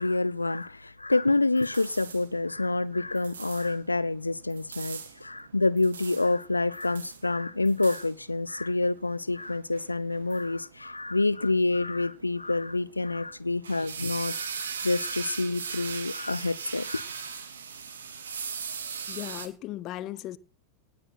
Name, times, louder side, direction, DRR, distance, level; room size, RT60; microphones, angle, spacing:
voice 1, 0.0-14.5 14.8-17.0, left 2 dB, 80° left, 0.6 m, -27 dB
sound 1, 1.2-19.5, right 6 dB, 65° right, 2.3 m, -40 dB
voice 2, 19.1-20.4, left 14 dB, 35° left, 0.9 m, -37 dB
19.0 x 8.8 x 5.9 m
figure-of-eight pair, 90°, 0 cm